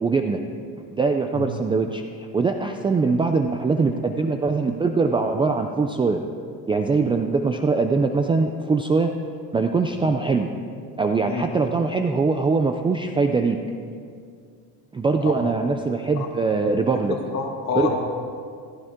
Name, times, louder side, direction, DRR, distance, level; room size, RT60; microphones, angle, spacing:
voice 1, 0.0-0.4 0.9-6.2 6.7-9.1 9.5-10.5 11.0-13.6 14.9-17.2 17.8-17.9, right 4 dB, 15° right, 5 dB, 0.3 m, -22 dB
voice 2, 17.3-17.9, left 5 dB, 45° left, 0 dB, 2.3 m, -27 dB
15.0 x 14.5 x 3.7 m, 2.2 s
cardioid pair, 140°, 39 cm